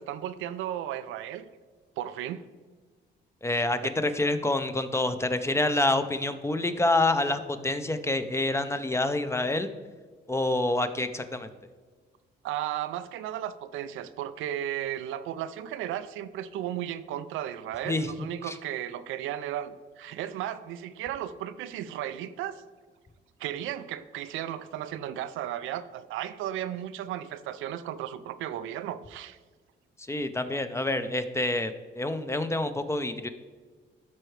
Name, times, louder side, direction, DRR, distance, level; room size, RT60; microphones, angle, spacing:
voice 1, 0.0-1.5 2.0-2.5 3.8-3.9 12.4-22.6 23.4-29.4, right 11 dB, 90° right, 0.4 m, -35 dB
voice 2, 3.4-9.7 10.3-11.5 17.9-18.1 18.4-18.5 30.0-33.3, left 2 dB, 15° left, 0.6 m, -27 dB
12.5 x 4.4 x 3.2 m
cardioid pair, 90°, 20 cm